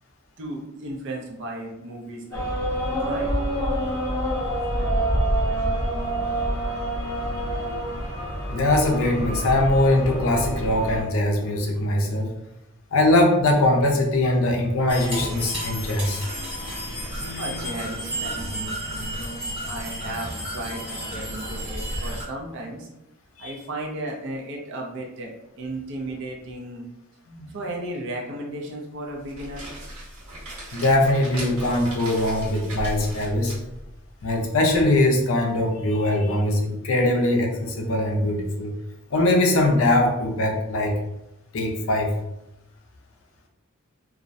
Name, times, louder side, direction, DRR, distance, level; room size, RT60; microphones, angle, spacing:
voice 1, 0.4-2.5 3.0-3.3 17.4-22.9 23.4-26.9 27.5-29.7, right 1 dB, 60° right, 0 dB, 0.5 m, -35 dB
sound 1, 2.3-11.0, right 1 dB, 10° left, 0.6 m, -26 dB
voice 2, 8.5-12.3 12.9-16.2 23.4-23.5 27.3-27.5 30.7-33.6 34.2-38.7 39.1-41.0 41.5-42.1, left 1 dB, 65° left, 1 dB, 0.5 m, -21 dB
sound 2, 14.9-22.2, equal, 25° right, 1.2 m, -32 dB
sound 3, 29.1-34.8, right 1 dB, 80° right, 1.1 m, -37 dB
2.4 x 2.0 x 2.5 m, 0.87 s
head